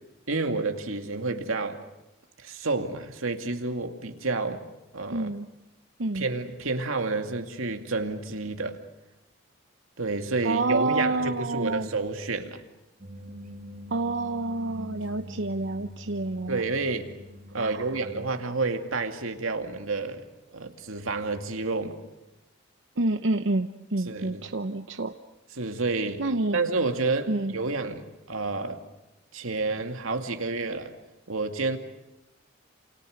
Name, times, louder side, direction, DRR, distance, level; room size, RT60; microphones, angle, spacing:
voice 1, 0.3-1.8 2.4-4.6 4.9-5.3 6.1-8.8 10.0-12.6 16.5-17.1 17.5-20.3 20.5-22.0 24.0-24.4 25.6-26.3 26.5-28.8 29.3-30.9 31.3-31.8, right 3 dB, 85° right, 5 dB, 2.4 m, -29 dB
voice 2, 5.1-5.5 6.0-6.2 10.4-11.9 13.9-16.6 17.6-17.8 23.0-25.2 26.2-26.6 27.3-27.5, right 2 dB, 65° right, 8 dB, 0.9 m, -28 dB
sound 1, 13.0-18.3, equal, 40° right, 3.1 m, -44 dB
29.0 x 28.0 x 6.6 m, 0.96 s
head